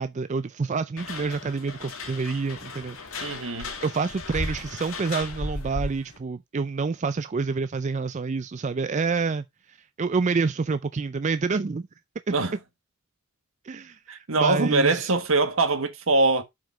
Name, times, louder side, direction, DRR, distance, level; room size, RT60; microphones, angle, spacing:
voice 1, 0.0-3.0 3.2-3.5 3.8-11.8 12.3-12.4 13.6-15.1, right 4 dB, 35° right, 0.4 m, -28 dB
sound 1, 1.0-6.2, left 2 dB, 75° left, 2.3 m, -35 dB
voice 2, 3.2-3.7 12.3-12.5 14.1-16.4, right 3 dB, 70° right, 1.5 m, -23 dB
7.8 x 5.1 x 4.5 m
head